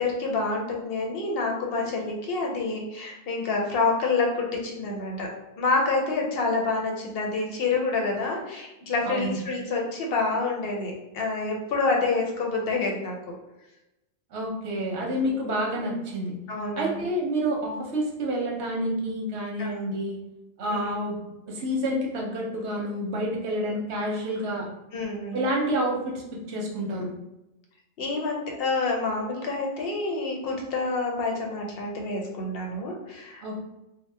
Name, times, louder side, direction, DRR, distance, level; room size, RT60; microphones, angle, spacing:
voice 1, 0.0-5.3 5.6-13.2 16.5-17.1 19.6-19.8 20.7-20.9 24.9-25.4 28.0-33.6, left 3 dB, 65° left, 0 dB, 0.8 m, -28 dB
voice 2, 9.0-9.4 14.3-16.3 16.8-20.2 20.6-21.2 21.5-24.7 25.3-27.1 33.4-33.6, right 1 dB, 80° right, -1 dB, 1.0 m, -28 dB
2.9 x 2.1 x 3.2 m, 0.95 s
omnidirectional pair, 1.1 m